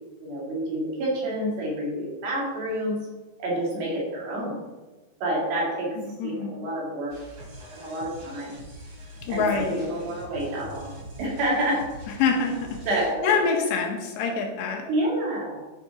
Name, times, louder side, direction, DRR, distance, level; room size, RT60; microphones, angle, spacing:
voice 1, 0.2-3.0 3.4-4.6 5.2-5.9 6.2-7.1 7.7-8.6 9.3-10.9 11.2-11.8 12.9-13.4 14.9-15.6, right 1 dB, 85° right, -4 dB, 5.5 m, -28 dB
voice 2, 6.0-6.5 9.3-9.9 12.2-12.6 13.2-14.9, left 5 dB, 85° left, 2 dB, 3.7 m, -25 dB
sound 1, 7.1-13.1, right 1 dB, 30° right, 3.8 m, -43 dB
11.5 x 7.2 x 5.4 m, 1.2 s
omnidirectional pair, 4.8 m